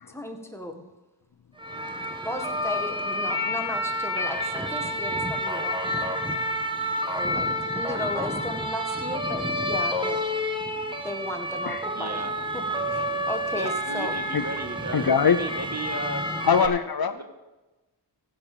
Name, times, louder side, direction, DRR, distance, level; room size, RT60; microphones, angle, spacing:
voice 1, 0.1-0.8 2.2-6.1 7.1-10.2 11.0-12.6 12.9-14.2, left 1 dB, 5° left, 3 dB, 1.7 m, -35 dB
sound 1, 1.6-16.7, equal, 10° right, 1.3 m, -29 dB
voice 2, 11.9-12.3 12.7-13.2 13.5-16.2 16.6-16.8 17.1-17.2, right 2 dB, 35° right, 5 dB, 1.5 m, -35 dB
voice 3, 14.9-15.4 16.4-17.1, left 7 dB, 55° left, 11 dB, 0.7 m, -22 dB
16.0 x 7.3 x 5.0 m, 1.1 s
wide cardioid pair, 55°, 43 cm